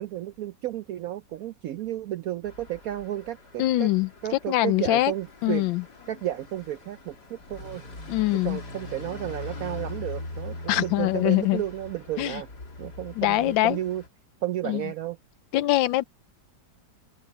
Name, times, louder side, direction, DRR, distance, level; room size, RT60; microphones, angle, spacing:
voice 1, 0.0-3.9 4.2-5.6 6.1-7.8 8.4-12.5 12.8-14.0 14.4-15.2, right 13 dB, 75° right, 0.8 m, -32 dB
sound 1, 2.4-14.1, left 2 dB, 60° left, 4.1 m, -42 dB
voice 2, 3.6-4.1 4.5-5.1 5.4-5.8 8.1-8.6 10.7-11.6 12.2-12.4 13.2-13.8 14.6-14.8 15.5-16.0, left 16 dB, 90° left, 1.4 m, -23 dB
open air
omnidirectional pair, 2.0 m